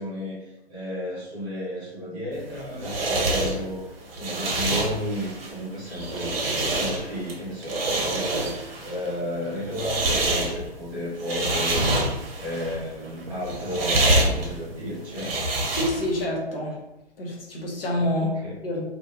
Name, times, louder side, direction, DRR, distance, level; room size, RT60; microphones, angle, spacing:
voice 1, 0.0-3.9 4.2-15.4 18.2-18.5, left 1 dB, 15° right, -8 dB, 0.5 m, -33 dB
sound 1, 2.4-16.2, right 1 dB, 65° right, 0.7 m, -27 dB
voice 2, 15.7-16.8 17.2-18.4 18.6-18.8, left 1 dB, 60° left, -2 dB, 0.9 m, -27 dB
2.4 x 2.2 x 2.8 m, 0.96 s
figure-of-eight pair, 125°, 32 cm